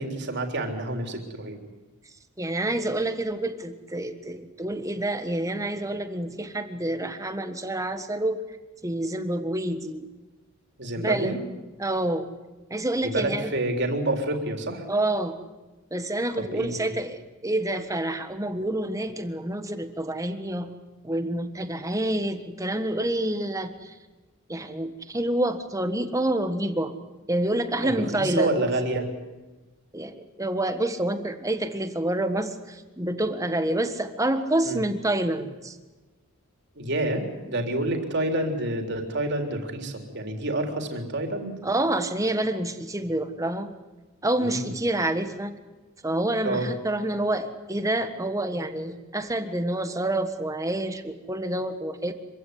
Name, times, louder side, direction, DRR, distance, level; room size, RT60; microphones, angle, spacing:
voice 1, 0.0-1.6 10.8-11.4 13.0-14.8 16.5-17.0 27.8-29.1 34.6-34.8 36.8-41.6 44.4-44.7 46.4-46.7, right 1 dB, 55° right, 4 dB, 3.7 m, -28 dB
voice 2, 2.4-8.4 8.8-10.1 11.0-11.4 11.8-12.3 12.7-13.5 14.9-15.4 15.9-20.7 21.0-23.9 24.5-26.9 27.3-28.6 29.9-35.8 41.6-43.7 44.2-45.5 46.0-52.1, right 1 dB, 15° right, 8 dB, 1.5 m, -28 dB
26.0 x 16.0 x 9.7 m, 1.2 s
head